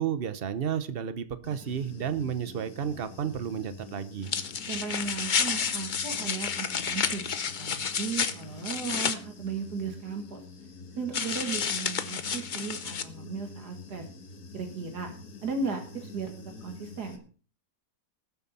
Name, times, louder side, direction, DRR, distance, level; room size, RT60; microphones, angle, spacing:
voice 1, 0.0-4.3, right 8 dB, 45° right, 12 dB, 0.9 m, -32 dB
Human voice / Buzz, 1.4-17.2, left 3 dB, 70° left, 2.0 m, -47 dB
sound 1, 4.2-9.2 11.1-13.0, left 6 dB, 45° left, 0.6 m, -30 dB
voice 2, 4.7-7.2 7.6-10.4 11.0-14.1 14.5-15.1 15.4-17.2, right 5 dB, 85° right, 4 dB, 2.3 m, -36 dB
19.5 x 7.5 x 4.2 m, 0.39 s
omnidirectional pair, 1.7 m